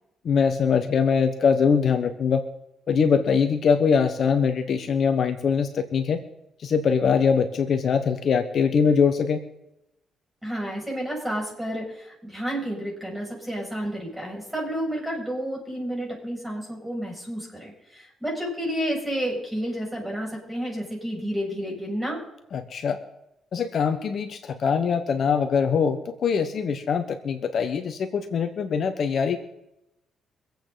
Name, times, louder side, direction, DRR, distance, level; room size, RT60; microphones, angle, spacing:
voice 1, 0.2-2.4 2.9-6.2 6.6-9.4 22.5-23.0 23.5-29.4, left 6 dB, 60° left, 8 dB, 1.3 m, -22 dB
voice 2, 10.4-22.2, equal, 5° right, -2 dB, 7.0 m, -30 dB
25.0 x 8.5 x 4.1 m, 0.87 s
cardioid pair, 90°, 0 cm